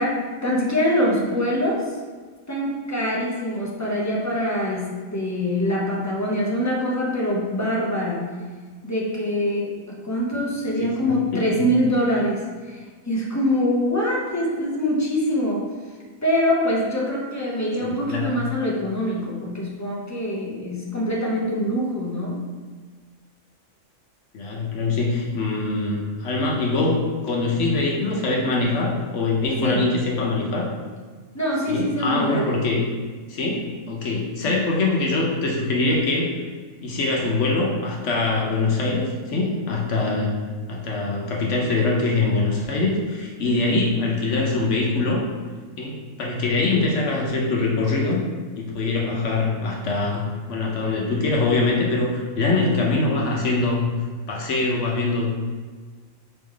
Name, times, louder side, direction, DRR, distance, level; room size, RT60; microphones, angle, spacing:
voice 1, 0.0-2.0 2.5-8.3 8.8-15.6 16.2-22.4 29.6-29.9 31.3-32.5 34.4-34.6 43.4-43.8, equal, 20° left, -4 dB, 0.4 m, -24 dB
voice 2, 11.3-11.7 17.8-18.3 24.3-30.7 31.7-32.8 33.3-36.3 36.8-40.3 40.7-45.2 45.8-48.2 48.6-50.2 50.5-53.9 54.3-55.3, left 3 dB, 65° left, -2 dB, 1.0 m, -23 dB
4.6 x 3.0 x 3.7 m, 1.5 s
omnidirectional pair, 1.4 m